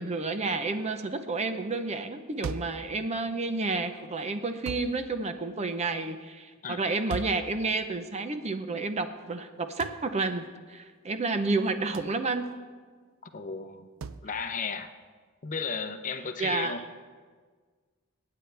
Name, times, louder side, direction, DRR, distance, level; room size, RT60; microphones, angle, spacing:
voice 1, 0.0-10.4 10.7-12.4 16.4-16.8, right 3 dB, 30° right, 8 dB, 0.7 m, -30 dB
sound 1, 2.4-2.9 4.7-5.0 7.1-7.5 9.8-10.1 11.9-12.2 14.0-14.3, right 5 dB, 75° right, 0.5 m, -37 dB
voice 2, 6.6-7.0 13.2-13.9 14.2-14.9 15.4-16.8, left 5 dB, 40° left, 8 dB, 0.7 m, -34 dB
24.0 x 9.4 x 3.4 m, 1.5 s
head